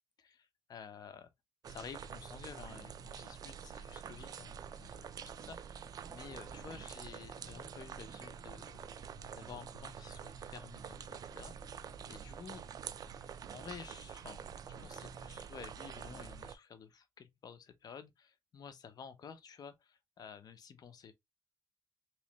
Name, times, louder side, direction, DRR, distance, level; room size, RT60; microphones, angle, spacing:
voice 1, 0.2-1.3 1.7-8.8 9.3-11.8 12.1-12.6 13.1-21.1, left 7 dB, 50° left, 0.7 m, -52 dB
sound 1, 1.6-16.6, right 7 dB, 50° right, 0.4 m, -47 dB
3.1 x 3.1 x 3.0 m
cardioid pair, 110°, 8 cm